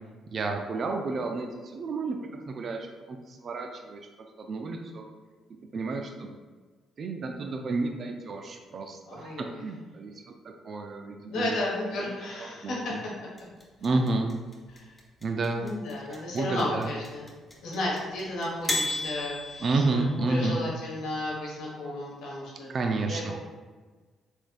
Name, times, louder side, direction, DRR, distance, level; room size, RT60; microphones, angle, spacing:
voice 1, 0.3-2.2 2.5-4.0 4.4-5.0 5.7-6.3 7.0-10.1 10.6-11.5 12.4-13.0 13.8-14.3 15.2-15.7 16.1-16.9 19.6-20.6 22.7-23.3, right 3 dB, 50° right, 3 dB, 0.4 m, -30 dB
voice 2, 9.1-9.6 11.3-13.3 13.9-14.0 14.7-14.9 15.6-17.3 17.6-23.2, left 1 dB, 70° left, -4 dB, 1.2 m, -33 dB
sound 1, 13.4-20.4, left 2 dB, 25° left, 1.1 m, -34 dB
4.3 x 3.4 x 2.3 m, 1.4 s
hypercardioid pair, 50°, 0 cm